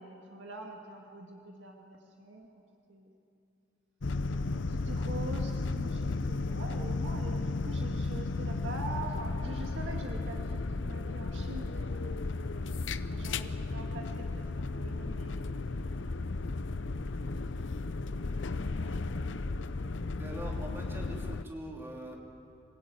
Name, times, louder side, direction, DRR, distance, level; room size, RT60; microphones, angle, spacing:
voice 1, 0.0-2.5 2.9-3.1 4.7-14.3 14.6-15.8 16.8-17.0 18.7-20.0, right 2 dB, 90° right, 1 dB, 1.9 m, -45 dB
sound 1, 4.0-21.4, left 3 dB, 90° left, 0.7 m, -34 dB
voice 2, 4.3-4.6 20.2-22.2, equal, 15° right, -1 dB, 3.1 m, -43 dB
26.5 x 17.0 x 8.9 m, 2.7 s
head